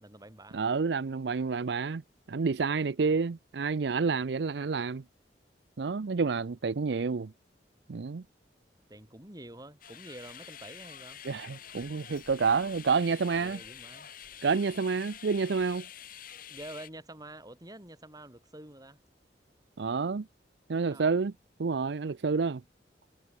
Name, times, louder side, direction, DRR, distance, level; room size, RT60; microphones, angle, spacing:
voice 1, 0.0-0.7 8.9-11.2 13.4-14.1 16.5-19.0 20.9-21.1, right 1 dB, 20° right, 7.1 m, -47 dB
voice 2, 0.5-2.0 2.3-5.0 5.8-7.3 7.9-8.2 11.2-13.6 14.4-15.9 19.8-20.3 20.7-21.3 21.6-22.6, right 5 dB, 70° right, 0.5 m, -29 dB
sound 1, 9.8-16.9, left 9 dB, 55° left, 4.7 m, -47 dB
head